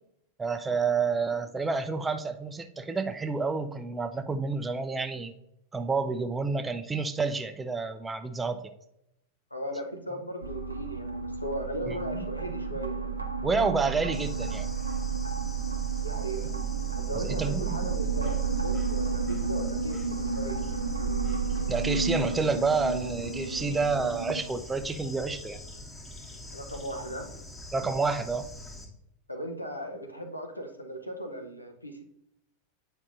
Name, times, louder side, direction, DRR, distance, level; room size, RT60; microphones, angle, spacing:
voice 1, 0.4-5.3 5.7-8.7 11.9-12.3 13.4-14.7 17.1-17.8 21.7-25.6 27.7-28.5, right 4 dB, 15° right, 9 dB, 0.5 m, -29 dB
voice 2, 9.5-13.1 15.6-16.5 17.0-20.6 26.5-27.3 29.3-32.0, equal, 85° left, 5 dB, 0.8 m, -37 dB
sound 1, 10.4-24.4, right 5 dB, 85° right, 0.6 m, -31 dB
Bird / Insect, 14.1-28.9, left 1 dB, 15° left, 1.3 m, -44 dB
8.4 x 5.3 x 2.5 m, 0.80 s
figure-of-eight pair, 90°, 0 cm